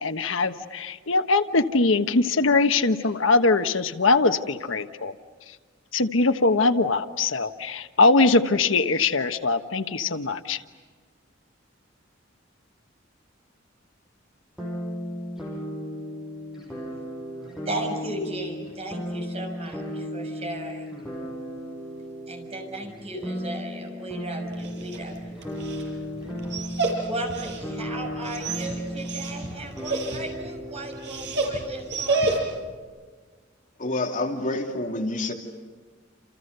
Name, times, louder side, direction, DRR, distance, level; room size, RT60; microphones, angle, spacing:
voice 1, 0.0-5.1 5.9-10.6, left 3 dB, 85° left, 9 dB, 1.2 m, -22 dB
sound 1, 14.6-32.4, equal, ahead, 6.9 m, -35 dB
voice 2, 17.6-21.1 22.3-25.5 27.0-32.5, right 1 dB, 35° right, 2 dB, 6.4 m, -36 dB
Dog, 24.5-32.7, right 3 dB, 60° right, 5.9 m, -31 dB
voice 3, 33.8-35.3, left 2 dB, 40° left, 2 dB, 2.9 m, -28 dB
29.5 x 28.5 x 6.8 m, 1.5 s
head